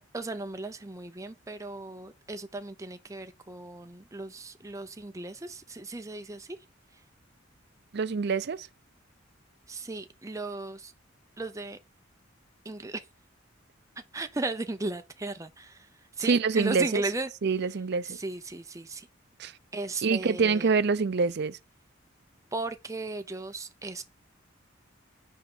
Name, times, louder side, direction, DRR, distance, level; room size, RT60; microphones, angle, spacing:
voice 1, 0.0-6.6 9.7-10.9 11.4-11.8 12.6-13.0 14.1-15.9 16.2-17.3 18.0-19.1 19.7-20.7 22.5-24.0, right 2 dB, 15° right, 0.6 m, -36 dB
voice 2, 7.9-8.7 16.2-17.0 17.4-18.2 19.4-19.5 20.0-21.6, right 4 dB, 55° right, 0.5 m, -26 dB
5.6 x 5.0 x 6.1 m
head